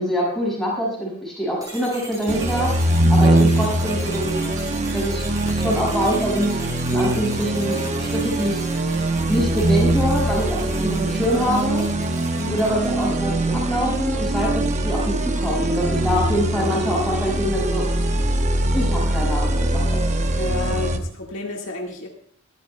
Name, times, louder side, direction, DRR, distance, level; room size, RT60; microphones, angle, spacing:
voice 1, 0.0-4.5 4.9-5.2 5.5-6.5 6.9-8.8 9.3-11.8 12.5-17.8 18.7-20.1, equal, ahead, -6 dB, 6.0 m, -25 dB
sound 1, 1.6-13.2, right 1 dB, 15° right, 5.2 m, -40 dB
sound 2, 2.3-21.0, right 1 dB, 30° right, 0.9 m, -22 dB
voice 2, 3.1-3.5 12.4-12.9 20.4-22.1, left 2 dB, 60° left, 0 dB, 1.8 m, -31 dB
22.0 x 12.5 x 2.2 m, 0.63 s
head